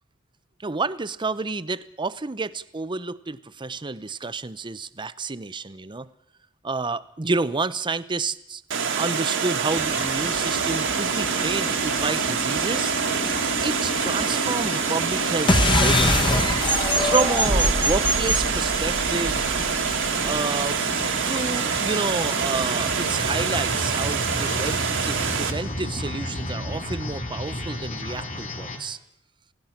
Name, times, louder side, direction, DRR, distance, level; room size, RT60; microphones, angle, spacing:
voice 1, 0.6-6.1 6.6-8.6 9.0-12.9 13.6-16.3 17.0-19.6 20.2-20.8 21.3-29.0, right 3 dB, 25° right, 15 dB, 0.7 m, -29 dB
Water, 8.7-25.5, right 6 dB, 65° right, 1.8 m, -26 dB
sound 1, 9.7-28.8, left 2 dB, 40° left, 3.5 m, -33 dB
sound 2, 15.5-20.4, left 1 dB, 25° left, 1.4 m, -22 dB
28.0 x 17.0 x 5.9 m, 0.79 s
head